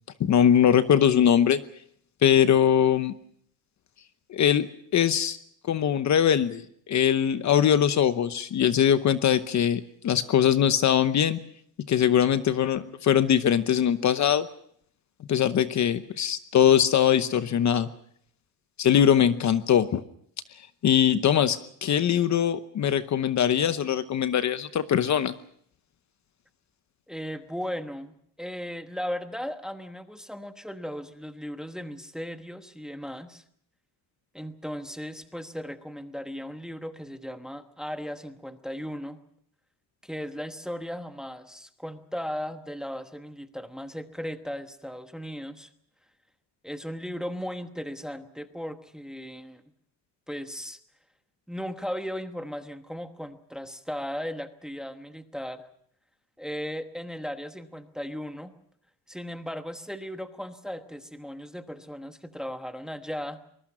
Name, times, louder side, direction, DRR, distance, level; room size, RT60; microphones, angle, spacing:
voice 1, 0.2-1.6 2.2-3.1 4.3-5.4 5.7-11.4 11.9-14.5 15.3-17.9 18.8-20.0 20.8-25.3, left 9 dB, 45° left, 12 dB, 0.9 m, -22 dB
voice 2, 27.1-33.4 34.3-39.2 40.0-45.7 46.6-49.6 50.3-50.8 51.5-55.7 56.4-58.5 59.1-63.4, equal, ahead, 8 dB, 1.1 m, -36 dB
24.0 x 21.5 x 6.2 m, 0.66 s
cardioid pair, 155°, 41 cm